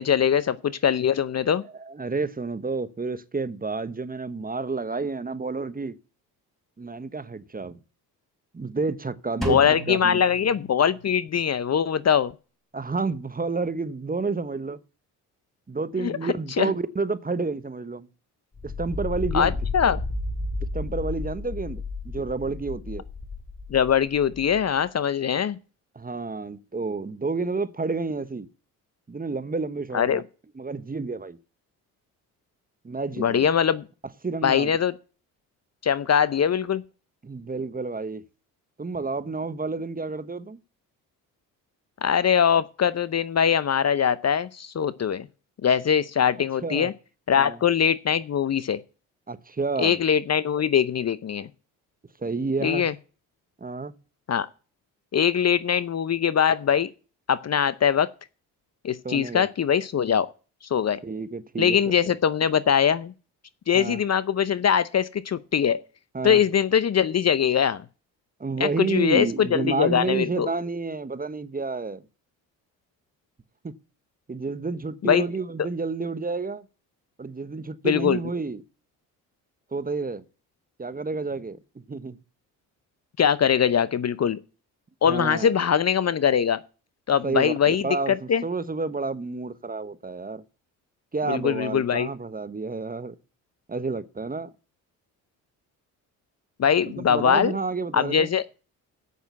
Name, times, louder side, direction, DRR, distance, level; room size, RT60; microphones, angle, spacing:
voice 1, 0.0-1.6 9.5-12.3 16.0-16.1 16.6-16.7 19.3-20.0 23.7-25.6 29.9-30.2 33.2-33.8 34.4-34.9 35.8-36.8 42.0-45.3 45.6-46.9 47.3-48.8 49.8-51.5 52.6-52.9 54.3-54.5 55.1-56.9 57.3-58.1 58.8-60.3 60.7-61.0 61.6-63.1 63.7-65.8 66.2-67.8 68.6-70.5 75.0-75.3 75.6-75.7 77.8-78.2 83.2-84.4 85.0-86.6 87.1-88.4 91.3-92.1 96.6-97.5 97.9-98.4, left 8 dB, 40° left, 0.7 m, -22 dB
voice 2, 1.6-6.0 6.8-7.8 8.5-9.6 9.9-10.2 12.7-14.8 15.7-18.1 18.6-19.6 20.7-23.0 25.9-28.5 29.1-30.2 30.5-31.4 32.8-33.4 34.2-34.7 37.2-38.2 38.8-40.6 46.6-46.9 47.4-47.6 49.3-50.0 52.2-52.9 53.6-54.0 59.0-59.5 61.0-61.8 63.7-64.0 66.1-66.4 68.4-72.0 73.6-73.7 74.3-76.7 77.2-78.6 79.7-80.2 80.8-82.2 85.0-85.5 87.2-90.4 91.1-93.2 93.7-94.5 96.9-98.3, right 4 dB, 20° right, 1.1 m, -30 dB
Drum, 9.4-11.3, equal, ahead, 4.6 m, -36 dB
sound 1, 18.5-24.6, left 3 dB, 20° left, 1.9 m, -32 dB
8.3 x 6.3 x 8.3 m
hypercardioid pair, 55°, 42 cm